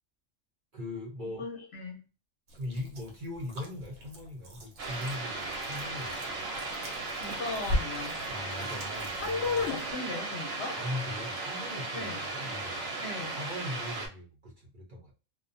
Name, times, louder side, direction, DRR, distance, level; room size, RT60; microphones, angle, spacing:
voice 1, 0.7-1.5 2.5-6.6 8.3-9.6 10.8-12.9 13.3-15.1, left 1 dB, 50° right, 0.7 m, -40 dB
voice 2, 1.3-2.0 7.0-8.2 9.2-10.8 11.9-12.2 13.0-13.4, left 4 dB, 60° left, 0.8 m, -35 dB
sound 1, 2.5-9.9, left 1 dB, 70° right, 1.2 m, -40 dB
sound 2, 4.8-14.1, right 3 dB, 85° right, 1.2 m, -36 dB
2.3 x 2.2 x 2.6 m
omnidirectional pair, 1.4 m